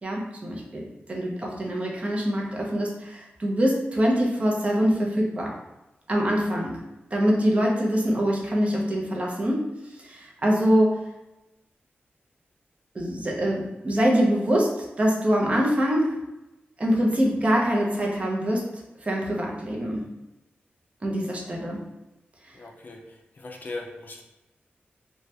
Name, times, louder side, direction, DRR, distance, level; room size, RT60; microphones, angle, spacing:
voice 1, 0.0-0.8 1.1-5.5 6.1-6.8 7.1-9.7 9.9-11.0 12.9-16.2 16.8-18.6 19.0-20.1 21.0-21.8, equal, 30° right, -2 dB, 0.6 m, -24 dB
voice 2, 22.5-24.2, left 2 dB, 50° left, 2 dB, 0.4 m, -39 dB
3.2 x 2.3 x 2.7 m, 0.96 s
wide cardioid pair, 115°, 4 cm